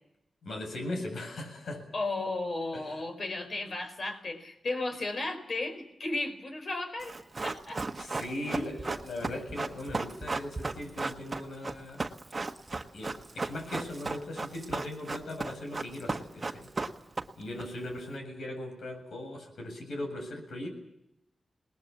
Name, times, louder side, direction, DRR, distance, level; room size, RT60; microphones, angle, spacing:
voice 1, 0.4-1.8 2.7-3.0 8.0-12.0 12.7-16.7 17.4-20.7, left 1 dB, 85° left, 4 dB, 7.7 m, -39 dB
voice 2, 1.9-7.1 7.4-7.8 8.1-8.7, left 2 dB, 50° left, 6 dB, 4.6 m, -35 dB
Run, 7.0-17.6 17.9-18.0, right 3 dB, 30° right, 1.4 m, -35 dB
27.5 x 20.0 x 7.2 m, 0.85 s
wide cardioid pair, 125°, 0 cm